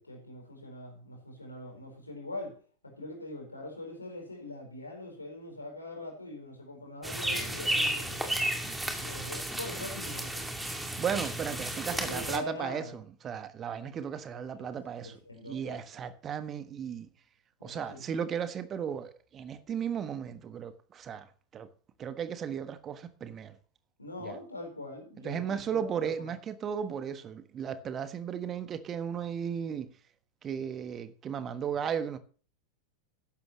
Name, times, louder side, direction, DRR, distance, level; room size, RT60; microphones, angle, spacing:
voice 1, 0.0-2.6 2.8-8.4 8.9-10.4 11.9-12.9 14.3-14.7 15.0-15.8 17.6-18.1 24.0-26.3, left 2 dB, 80° left, 4.5 m, -43 dB
sound 1, 7.0-12.4, right 1 dB, 5° right, 2.4 m, -33 dB
voice 2, 11.0-15.1 15.5-17.1 17.6-21.3 21.5-21.7 22.0-23.5 24.2-24.4 25.2-29.9 30.4-32.2, right 8 dB, 25° right, 1.3 m, -35 dB
13.5 x 11.0 x 3.1 m
figure-of-eight pair, 90°, 0 cm